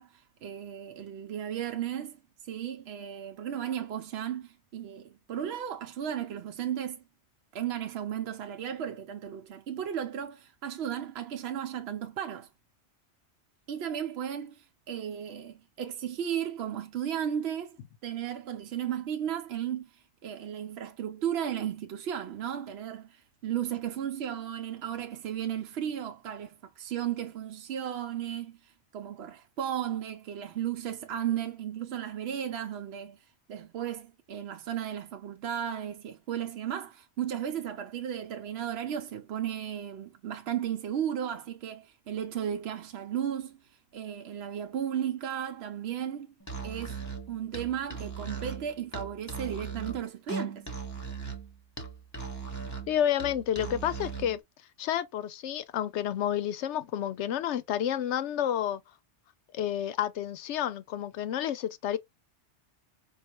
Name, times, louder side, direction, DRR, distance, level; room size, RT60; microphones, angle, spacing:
voice 1, 0.0-2.2 2.4-7.0 7.5-12.5 13.7-17.8 18.0-33.2 33.5-43.6 43.9-46.3 46.6-47.0 47.3-50.6, right 9 dB, 70° right, 0.8 m, -35 dB
Musical instrument, 46.4-54.4, right 5 dB, 15° left, 0.9 m, -38 dB
voice 2, 52.9-54.4 54.8-58.8 59.5-62.0, left 10 dB, 80° left, 0.9 m, -30 dB
4.7 x 2.4 x 2.9 m
omnidirectional pair, 1.2 m